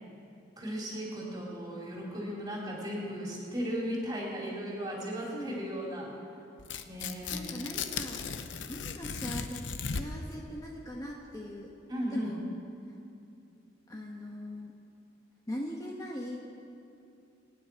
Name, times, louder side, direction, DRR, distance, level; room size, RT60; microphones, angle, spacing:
voice 1, 0.6-6.1 6.8-7.6 11.9-12.4, equal, 20° right, -3 dB, 3.2 m, -36 dB
voice 2, 5.3-5.7 7.3-8.2 8.7-11.7 12.1-12.4 13.9-14.7 15.5-16.4, equal, 20° left, -2 dB, 1.1 m, -40 dB
Tearing, 6.6-10.3, left 5 dB, 85° left, 0.7 m, -37 dB
24.5 x 9.9 x 4.6 m, 2.7 s
head